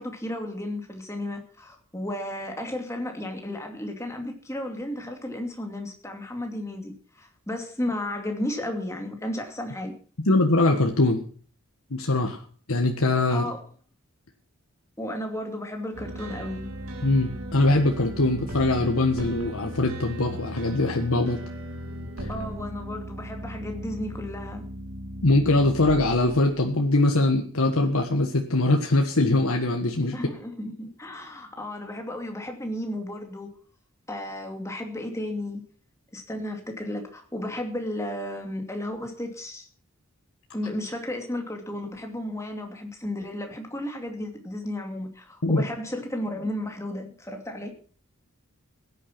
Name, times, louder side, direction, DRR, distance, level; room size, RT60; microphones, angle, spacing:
voice 1, 0.0-9.9 13.3-13.6 15.0-16.7 22.3-24.6 30.1-33.5 34.1-35.6 36.1-39.7 40.5-47.7, left 1 dB, 15° left, 4 dB, 2.5 m, -33 dB
voice 2, 10.3-11.2 11.9-12.4 12.7-13.5 17.0-21.4 22.2-22.3 25.2-30.1 45.4-45.6, left 2 dB, 85° left, 3 dB, 1.6 m, -22 dB
sound 1, 15.9-26.7, equal, 80° right, 3.2 m, -37 dB
16.5 x 9.8 x 6.0 m, 0.43 s
head